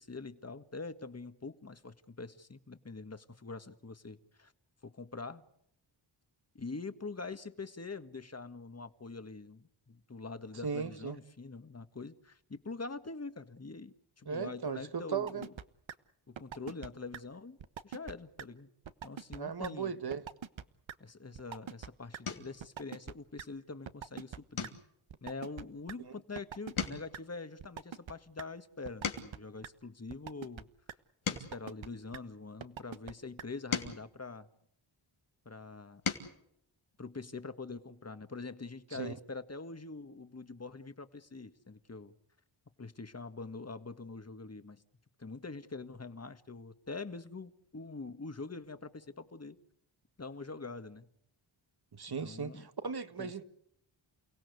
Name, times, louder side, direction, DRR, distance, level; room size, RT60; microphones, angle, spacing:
voice 1, 0.0-4.5 4.8-5.4 6.5-15.5 16.3-17.6 17.8-18.7 19.0-19.9 21.0-24.8 25.2-30.7 31.3-34.5 35.5-36.0 37.0-42.1 42.8-44.8 45.2-49.6 50.2-51.1 52.2-52.7 53.2-53.5, left 3 dB, 30° left, 1.8 m, -44 dB
voice 2, 10.6-11.2 14.3-15.4 19.4-20.2 38.9-39.1 52.0-53.5, right 6 dB, 50° right, 1.7 m, -37 dB
sound 1, 15.3-15.6 15.9-16.0 16.4-16.9 17.1-17.2 17.6-18.1 18.4-18.5 18.8-19.4 19.6-19.7 20.1-20.6 20.9-21.0 21.3-21.9 22.1-22.2 22.6-23.4 23.9-24.7 25.1-25.9 26.4-26.9 27.1-27.2 27.6-28.1 28.4-28.5 28.8-29.4 29.6-29.7 30.1-30.6 30.9-31.0 31.3-31.9 32.1-32.2 32.6-33.1 33.4-33.5 33.8-33.9, right 8 dB, 70° right, 1.3 m, -43 dB
sound 2, 21.4-21.6 22.2-22.6 23.1-23.5 23.8-24.0 24.5-26.3 26.6-29.6 30.2-32.6 33.3-35.2 35.7-36.4 37.8-37.9 38.2-38.4, left 6 dB, 85° left, 3.1 m, -41 dB
29.5 x 17.0 x 8.1 m
cardioid pair, 50°, 48 cm